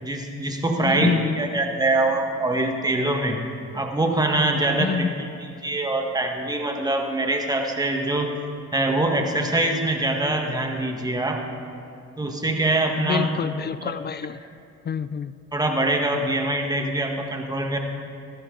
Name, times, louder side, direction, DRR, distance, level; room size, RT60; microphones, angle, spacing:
voice 1, 0.0-3.4 3.7-5.1 5.4-8.3 8.7-11.4 12.2-13.3 13.8-13.9 15.5-17.8, right 2 dB, 15° right, 3 dB, 1.5 m, -24 dB
voice 2, 0.8-1.4 4.8-5.2 13.0-14.4 14.9-15.3, left 7 dB, 35° left, 15 dB, 0.4 m, -27 dB
17.5 x 13.5 x 3.8 m, 2.5 s
cardioid pair, 90°, 30 cm